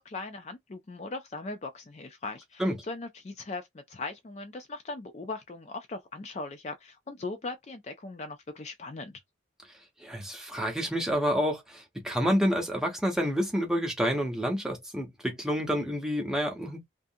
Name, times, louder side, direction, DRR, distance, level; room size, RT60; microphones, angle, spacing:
voice 1, 0.0-9.2, left 3 dB, 35° left, 0.4 m, -39 dB
voice 2, 10.0-16.9, equal, 5° right, 0.7 m, -28 dB
2.6 x 2.4 x 2.6 m
head